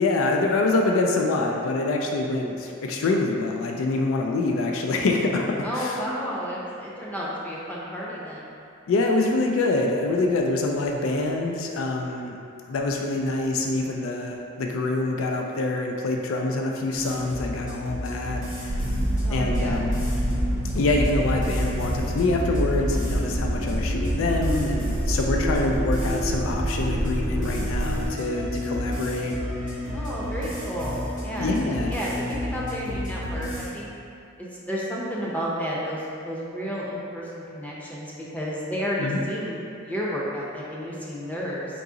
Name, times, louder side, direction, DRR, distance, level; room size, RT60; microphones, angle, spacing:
voice 1, 0.0-6.0 8.9-12.4 12.7-18.8 19.3-20.0 20.7-29.3 31.4-31.9 39.0-39.2, left 2 dB, 85° left, 1 dB, 0.4 m, -25 dB
voice 2, 5.6-8.4 19.2-19.8 29.9-33.9 34.4-41.7, equal, 10° left, -6 dB, 0.5 m, -31 dB
sound 1, 16.9-33.7, left 1 dB, 45° left, 1.2 m, -31 dB
sound 2, 18.7-28.1, right 1 dB, 70° right, 0.6 m, -27 dB
3.7 x 2.8 x 3.7 m, 2.5 s
head